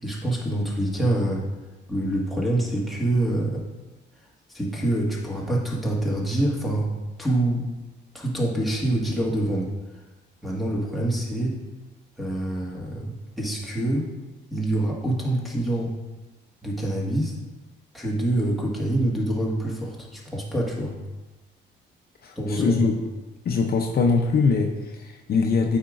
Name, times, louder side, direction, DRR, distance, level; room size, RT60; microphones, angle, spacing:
voice 1, 0.0-1.5 1.9-3.6 4.5-6.9 7.2-7.7 8.1-9.7 10.4-11.6 12.2-14.1 14.5-15.9 16.6-17.3 17.9-21.0 22.3-22.9, right 1 dB, ahead, -4 dB, 1.7 m, -26 dB
voice 2, 22.2-22.9 23.5-25.8, left 4 dB, 50° left, 3 dB, 0.6 m, -22 dB
8.6 x 5.0 x 2.5 m, 1.1 s
cardioid pair, 90°, 20 cm